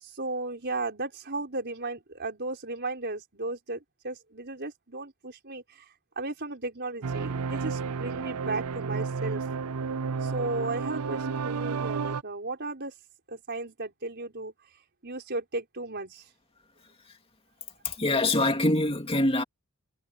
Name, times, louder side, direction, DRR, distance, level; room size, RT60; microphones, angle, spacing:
voice 1, 0.0-5.8 6.2-9.4 10.2-12.9 13.3-14.5 15.0-16.2, right 2 dB, 50° right, 4.8 m, -35 dB
sound 1, 7.0-12.2, right 5 dB, 80° right, 0.5 m, -31 dB
voice 2, 17.8-19.4, left 2 dB, 25° left, 2.5 m, -24 dB
head